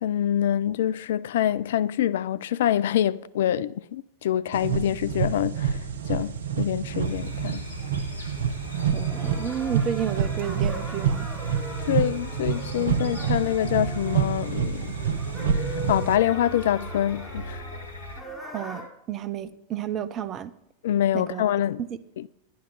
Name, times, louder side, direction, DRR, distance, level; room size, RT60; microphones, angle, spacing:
voice 1, 0.0-5.8 6.1-7.6 11.9-15.0 15.5-17.6 20.8-21.8 22.2-22.3, left 11 dB, 55° left, 0.4 m, -25 dB
sound 1, 4.5-16.2, right 7 dB, 65° right, 0.9 m, -28 dB
sound 2, 7.0-18.2, equal, 75° left, 1.7 m, -39 dB
sound 3, 8.5-18.8, left 2 dB, ahead, 4.9 m, -41 dB
voice 2, 8.9-11.3 18.5-20.5 21.1-21.4 21.9-22.0, right 10 dB, 30° right, 0.7 m, -31 dB
11.0 x 10.0 x 4.7 m
figure-of-eight pair, 90°, 0 cm